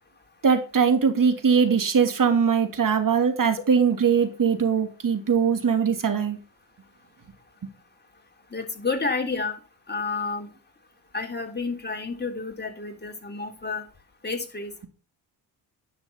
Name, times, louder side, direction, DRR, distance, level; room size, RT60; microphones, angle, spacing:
voice 1, 0.4-6.4, right 6 dB, 45° right, 7 dB, 2.8 m, -21 dB
voice 2, 8.5-9.6 9.9-10.5 11.1-13.8 14.2-14.7, left 4 dB, 20° left, 3 dB, 3.5 m, -30 dB
10.5 x 6.8 x 5.8 m, 0.34 s
supercardioid pair, 55°, 44 cm